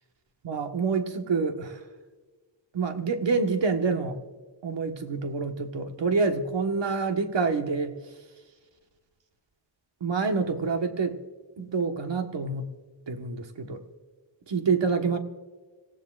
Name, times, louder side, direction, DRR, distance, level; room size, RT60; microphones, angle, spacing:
voice 1, 0.4-1.9 2.7-4.2 4.6-8.3 10.0-11.2 11.6-12.7 13.1-13.8 14.4-15.2, right 4 dB, 70° right, 5 dB, 1.5 m, -27 dB
26.5 x 16.5 x 2.5 m, 1.3 s
wide cardioid pair, 155°, 45 cm